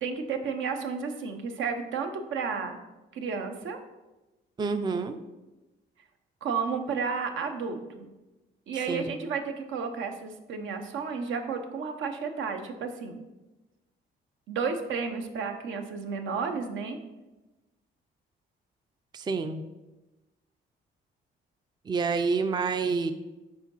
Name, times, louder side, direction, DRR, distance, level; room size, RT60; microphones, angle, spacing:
voice 1, 0.0-2.8 3.1-3.8 6.4-8.1 8.7-13.2 14.5-17.0, right 5 dB, 75° right, 6 dB, 0.8 m, -32 dB
voice 2, 4.6-5.2 8.9-9.1 19.1-19.6 21.9-23.1, right 4 dB, 20° right, 9 dB, 0.4 m, -28 dB
4.9 x 3.8 x 5.5 m, 1.1 s
cardioid pair, 90°, 20 cm